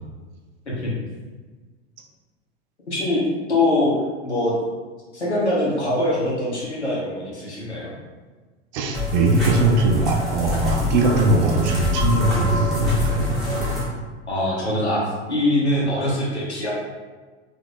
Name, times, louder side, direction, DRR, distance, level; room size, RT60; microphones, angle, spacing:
voice 1, 2.9-3.2 3.5-4.5 5.1-7.9 12.5-12.8 14.3-15.0 15.3-16.7, left 1 dB, 85° left, -5 dB, 1.3 m, -23 dB
voice 2, 8.7-13.2, right 3 dB, 45° right, 3 dB, 0.6 m, -20 dB
sound 1, 8.9-13.8, left 2 dB, ahead, 1.5 m, -25 dB
3.9 x 3.1 x 3.0 m, 1.4 s
figure-of-eight pair, 90°, 33 cm